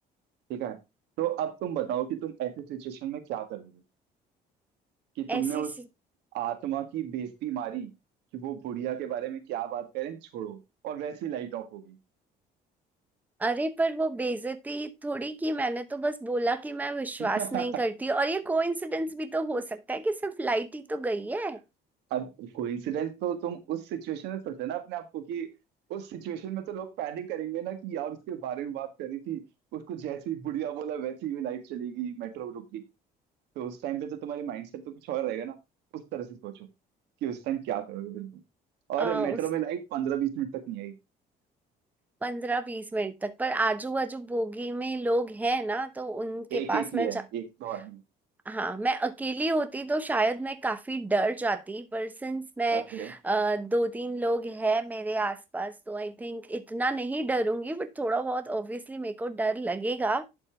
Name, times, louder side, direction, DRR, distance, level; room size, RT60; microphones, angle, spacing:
voice 1, 1.2-3.8 5.2-5.7 6.3-7.9 8.3-10.6 10.8-11.9 17.2-17.7 22.1-25.5 25.9-29.4 29.7-32.8 33.5-35.6 35.9-36.7 37.2-38.3 38.9-40.9 46.5-48.0 52.7-53.1, right 10 dB, 85° right, 1.7 m, -33 dB
voice 2, 5.3-5.6 13.4-21.6 39.0-39.4 42.2-47.2 48.5-60.3, right 2 dB, 10° right, 0.9 m, -29 dB
11.0 x 4.5 x 4.5 m
cardioid pair, 110°, 17 cm